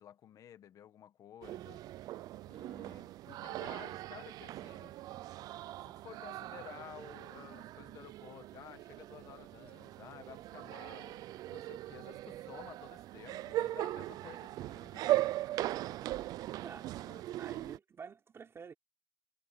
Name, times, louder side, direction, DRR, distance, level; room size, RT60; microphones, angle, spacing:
voice 1, 0.0-1.8 2.5-4.9 5.8-11.2 11.5-15.3 17.0-17.2, left 10 dB, 70° left, 1.7 m, -53 dB
sound 1, 1.4-17.8, right 15 dB, 85° right, 0.5 m, -39 dB
voice 2, 16.6-17.0 17.4-18.7, right 6 dB, 45° right, 3.6 m, -49 dB
cardioid pair, 100°, 6 cm